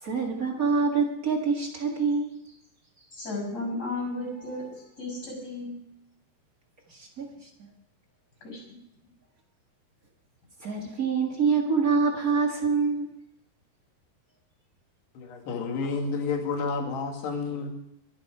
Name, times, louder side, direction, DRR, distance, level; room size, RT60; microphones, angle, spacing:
voice 1, 0.0-2.4 6.9-7.3 10.6-13.2, right 5 dB, 40° right, 1 dB, 1.2 m, -26 dB
voice 2, 3.1-5.8 8.4-8.6, left 2 dB, 20° left, 1 dB, 6.7 m, -34 dB
voice 3, 15.2-17.7, left 4 dB, 80° left, 3 dB, 4.3 m, -30 dB
23.5 x 10.0 x 4.9 m, 0.77 s
omnidirectional pair, 4.7 m